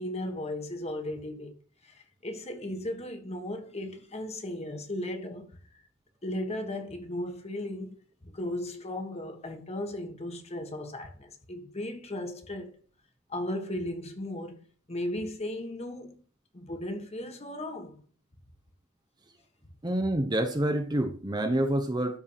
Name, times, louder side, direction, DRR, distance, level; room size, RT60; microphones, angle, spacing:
voice 1, 0.0-1.5 1.8-5.5 6.2-8.0 8.2-12.8 13.3-16.2 16.5-18.0, left 1 dB, 30° left, 1.6 m, -36 dB
voice 2, 19.8-22.2, right 1 dB, 20° right, 0.9 m, -27 dB
12.5 x 4.8 x 5.8 m
head